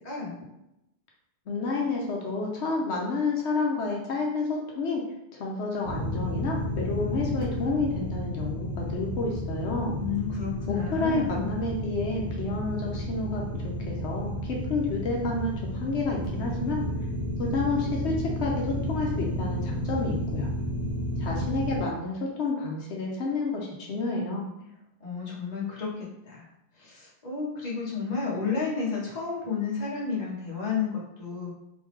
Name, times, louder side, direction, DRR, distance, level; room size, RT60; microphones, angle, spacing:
voice 1, 0.0-0.4 9.9-11.5 25.0-26.5 26.8-31.5, left 5 dB, 40° left, -5 dB, 1.2 m, -32 dB
voice 2, 1.5-5.0 5.4-10.0 10.7-16.8 17.4-20.5 21.2-24.5, left 3 dB, 80° left, -1 dB, 1.0 m, -30 dB
sound 1, 5.8-21.8, equal, 80° right, 1.4 m, -32 dB
4.1 x 3.6 x 3.1 m, 0.87 s
omnidirectional pair, 1.1 m